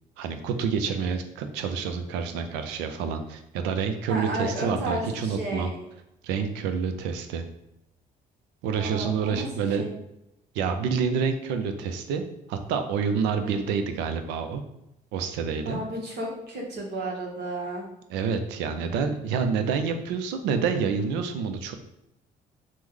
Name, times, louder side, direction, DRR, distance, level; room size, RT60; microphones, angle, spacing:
voice 1, 0.2-5.7 6.2-7.5 8.6-9.8 10.5-12.2 12.5-14.6 15.1-15.8 18.1-21.7, right 6 dB, 80° right, 7 dB, 0.4 m, -28 dB
voice 2, 4.1-5.7 8.7-9.4 9.8-9.9 13.4-13.5 15.7-17.8, right 1 dB, 65° right, -2 dB, 0.9 m, -32 dB
3.0 x 2.1 x 3.5 m, 0.85 s
supercardioid pair, 65°, 18 cm